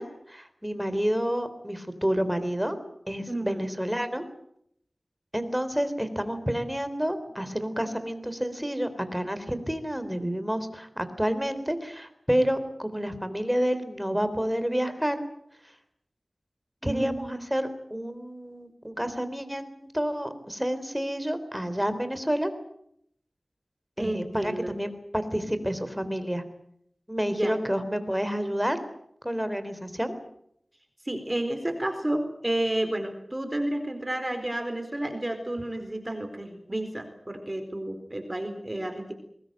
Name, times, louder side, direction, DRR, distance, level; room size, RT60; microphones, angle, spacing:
voice 1, 0.0-2.8 3.1-4.2 5.3-15.2 16.8-22.5 24.0-26.4 27.1-28.8 29.2-30.2, equal, 5° right, 11 dB, 3.7 m, -29 dB
voice 2, 3.3-3.7 16.8-17.5 24.0-24.7 27.3-27.5 31.0-39.1, right 1 dB, 25° right, 6 dB, 4.3 m, -31 dB
23.0 x 20.5 x 9.2 m, 0.71 s
wide cardioid pair, 70°, 0 cm